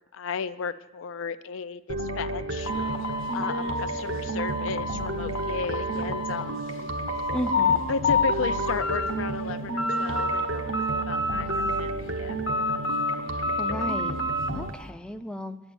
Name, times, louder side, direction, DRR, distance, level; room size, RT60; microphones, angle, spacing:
voice 1, 0.1-2.7 3.3-6.6 7.9-12.4, left 5 dB, 75° left, 13 dB, 0.4 m, -34 dB
sound 1, 1.9-14.7, right 2 dB, 75° right, 1.0 m, -32 dB
sound 2, 2.6-5.1 5.3-6.4 6.8-7.8 8.0-9.1 9.5-10.5 10.7-12.0 12.5-14.5, left 3 dB, 90° left, 1.0 m, -28 dB
voice 2, 7.3-7.8 13.6-14.2 14.5-15.6, equal, 5° left, 8 dB, 0.4 m, -34 dB
8.9 x 8.6 x 6.8 m, 1.0 s
head